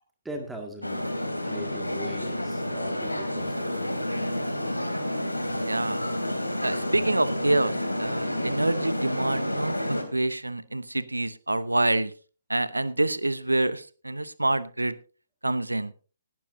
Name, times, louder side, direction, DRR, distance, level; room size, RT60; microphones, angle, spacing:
voice 1, 0.2-1.1 1.4-3.9, right 1 dB, 5° right, 3 dB, 2.0 m, -40 dB
sound 1, 0.8-10.0, left 1 dB, 90° left, 3.0 m, -30 dB
voice 2, 5.6-6.0 6.6-12.1 12.5-15.0 15.4-15.9, right 2 dB, 80° right, 16 dB, 0.8 m, -27 dB
18.5 x 12.0 x 2.7 m, 0.36 s
figure-of-eight pair, 135°, 0 cm